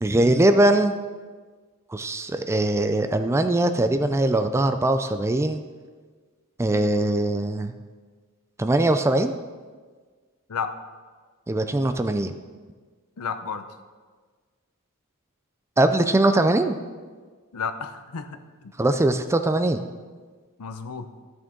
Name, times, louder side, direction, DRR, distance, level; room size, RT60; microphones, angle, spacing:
voice 1, 0.0-0.9 1.9-5.6 6.6-7.7 8.6-9.3 11.5-12.3 15.8-16.8 18.8-19.8, right 1 dB, 10° right, 8 dB, 0.3 m, -21 dB
voice 2, 13.2-13.6 17.5-18.4 20.6-21.1, left 6 dB, 85° left, 9 dB, 0.7 m, -31 dB
13.5 x 6.2 x 3.7 m, 1.5 s
head